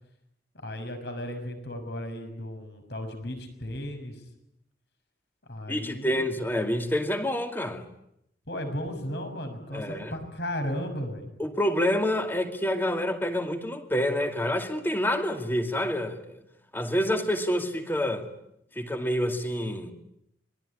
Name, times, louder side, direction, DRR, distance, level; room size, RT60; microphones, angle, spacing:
voice 1, 0.5-4.2 5.5-6.3 8.5-11.3, equal, 60° left, 6 dB, 6.4 m, -35 dB
voice 2, 5.7-7.9 9.7-10.2 11.4-16.4 16.7-18.3 18.8-19.9, left 1 dB, 10° left, 6 dB, 2.2 m, -27 dB
26.0 x 22.0 x 9.9 m, 0.79 s
head